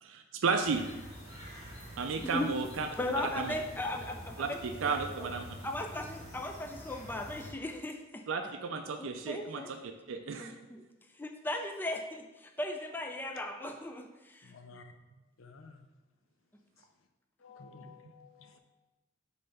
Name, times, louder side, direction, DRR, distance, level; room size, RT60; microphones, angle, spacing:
voice 1, 0.0-0.8 2.0-2.9 3.2-3.5 4.4-5.4 8.3-10.5, right 4 dB, 75° right, 5 dB, 0.4 m, -33 dB
sound 1, 0.6-7.5, equal, 35° left, 1.7 m, -47 dB
voice 2, 2.2-2.5 3.0-5.3 5.6-8.3 9.0-9.7 10.4-10.8 11.1-14.5, left 1 dB, 10° left, 4 dB, 0.3 m, -37 dB
voice 3, 14.4-14.9 15.4-15.8 17.4-18.6, left 4 dB, 90° left, 7 dB, 0.6 m, -53 dB
5.4 x 3.3 x 5.3 m, 1.1 s
head